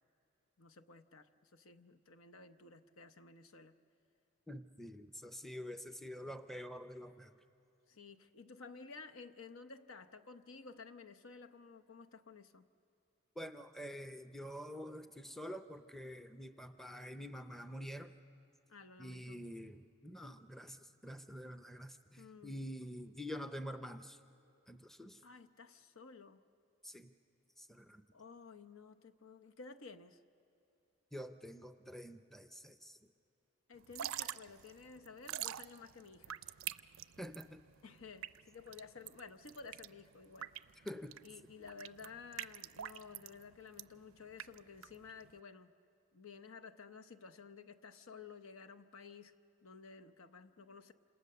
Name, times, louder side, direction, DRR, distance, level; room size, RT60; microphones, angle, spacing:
voice 1, 0.6-3.8 7.9-12.7 18.7-19.4 22.2-22.6 25.2-26.4 28.1-30.2 33.7-36.5 37.8-40.9 41.2-45.7 46.1-49.3 49.6-50.9, left 4 dB, 75° left, 8 dB, 0.9 m, -54 dB
voice 2, 4.5-7.3 13.4-18.1 19.0-24.2 24.7-25.2 26.8-27.1 27.6-28.0 31.1-33.0 37.2-37.6 40.8-41.1, equal, ahead, 8 dB, 0.6 m, -47 dB
Drip / Trickle dribble, 33.8-45.4, right 11 dB, 75° right, 0.5 m, -46 dB
28.0 x 27.0 x 6.8 m, 2.8 s
head